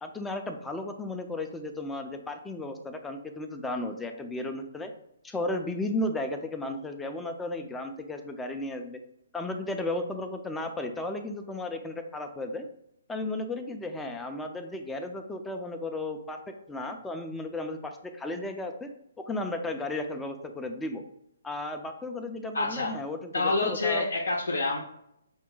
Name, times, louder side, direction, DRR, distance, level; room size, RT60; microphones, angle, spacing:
voice 1, 0.0-4.9 5.2-9.0 9.3-12.7 13.1-16.4 16.7-18.9 19.2-21.0 21.4-24.0, left 2 dB, 5° left, 5 dB, 0.4 m, -34 dB
voice 2, 22.5-22.9 23.3-24.8, left 3 dB, 70° left, 1 dB, 0.6 m, -27 dB
5.2 x 2.2 x 3.8 m, 0.76 s
figure-of-eight pair, 135°, 0 cm